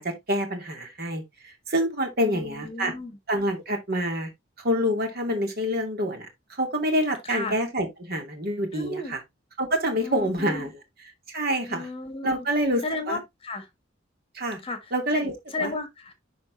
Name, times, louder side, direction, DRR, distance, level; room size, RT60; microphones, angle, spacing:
voice 1, 0.0-2.9 3.3-4.3 4.6-9.2 9.6-10.7 11.3-11.9 12.2-13.2 14.3-14.6 14.9-15.3 15.6-15.7, equal, 55° right, 2.4 m, -27 dB
voice 2, 2.2-3.2 7.2-7.6 8.7-9.1 10.0-10.7 11.7-12.4 12.8-13.7 14.6-14.8 15.1-15.3 15.5-16.1, left 2 dB, 30° left, 1.4 m, -33 dB
11.0 x 4.1 x 2.6 m
head